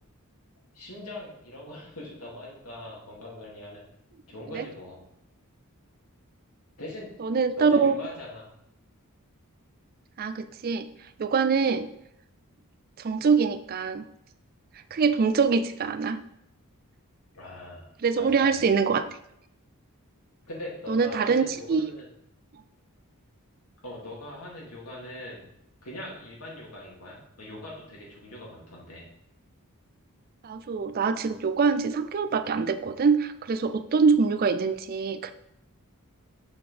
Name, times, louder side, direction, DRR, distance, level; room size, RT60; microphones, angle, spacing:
voice 1, 0.7-3.8 4.3-5.0 6.8-7.1 7.6-8.5 17.3-18.7 20.5-22.1 23.8-25.4 25.8-29.1, left 1 dB, 80° left, -3 dB, 2.5 m, -41 dB
voice 2, 7.2-8.0 10.2-10.9 11.2-11.9 13.0-14.0 14.9-16.2 18.0-19.0 20.9-21.9 30.4-35.3, right 5 dB, 40° right, 11 dB, 0.4 m, -24 dB
6.8 x 6.2 x 3.4 m, 0.79 s
head